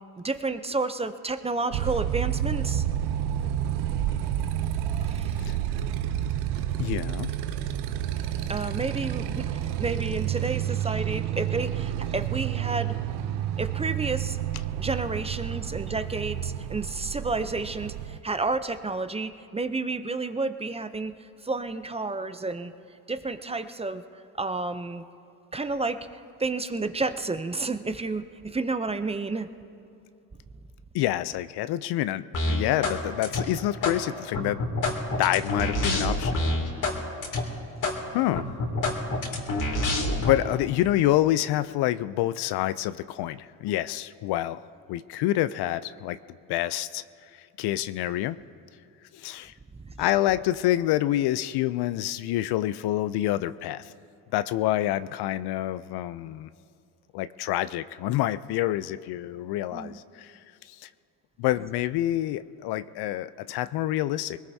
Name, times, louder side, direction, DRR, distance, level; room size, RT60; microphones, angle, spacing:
voice 1, 0.2-2.8 5.0-5.3 8.5-12.9 13.6-14.4 14.7-21.1 21.4-22.7 23.1-24.0 24.4-25.0 25.5-26.0 26.4-29.5 59.7-60.0, right 3 dB, 15° right, 10 dB, 0.6 m, -30 dB
Motorcycle, 1.7-18.2, right 11 dB, 75° right, 0.7 m, -30 dB
voice 2, 6.8-7.3 30.9-34.6 35.2-36.4 38.1-38.4 39.6-39.8 40.2-44.6 44.9-46.2 46.5-47.0 47.6-48.4 49.1-49.5 50.0-53.8 54.3-56.5 57.1-60.3 60.8-60.9 61.4-64.4, left 14 dB, 70° left, 15 dB, 0.5 m, -27 dB
sound 1, 32.3-33.0 33.2-34.0 34.3-37.0 37.2-37.4 37.8-38.0 38.3-40.3, left 2 dB, 50° left, 2.7 m, -26 dB
21.5 x 19.5 x 2.8 m, 2.5 s
supercardioid pair, 85°, 40 cm